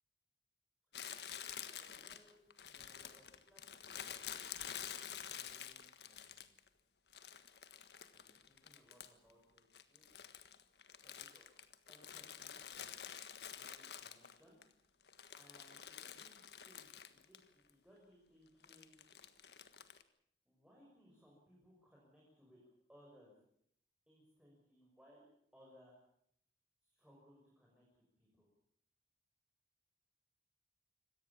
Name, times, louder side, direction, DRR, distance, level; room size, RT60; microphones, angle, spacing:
Crumpling crinkling, 0.9-6.7 7.1-9.3 9.6-14.6 15.0-17.4 17.7-17.8 18.6-20.0, left 9 dB, 75° left, 1.6 m, -49 dB
voice 1, 1.5-4.6 5.1-6.7 8.1-10.0 11.0-11.5 11.9-13.1 13.5-14.6 15.3-16.4 16.6-19.0 20.4-22.6 22.9-23.4 24.1-25.3 25.5-26.0 26.8-28.5, equal, 5° right, -4 dB, 6.2 m, -66 dB
25.5 x 18.0 x 7.3 m, 0.69 s
head